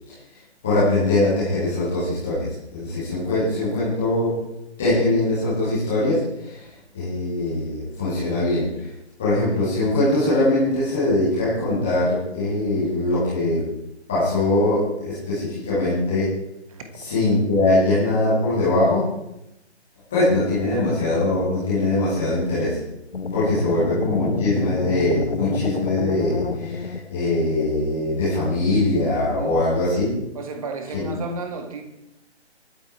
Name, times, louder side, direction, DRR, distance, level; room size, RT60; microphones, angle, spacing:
voice 1, 0.6-4.4 4.8-8.9 9.2-13.6 14.1-16.3 17.0-19.1 20.1-22.8 23.3-30.1 30.9-31.1, left 2 dB, ahead, -12 dB, 0.5 m, -22 dB
sound 1, 23.1-27.4, left 5 dB, 65° left, 1.3 m, -29 dB
voice 2, 29.4-29.7 30.3-31.8, right 3 dB, 30° right, 6 dB, 2.0 m, -33 dB
24.0 x 8.6 x 4.4 m, 0.86 s
figure-of-eight pair, 140°, 34 cm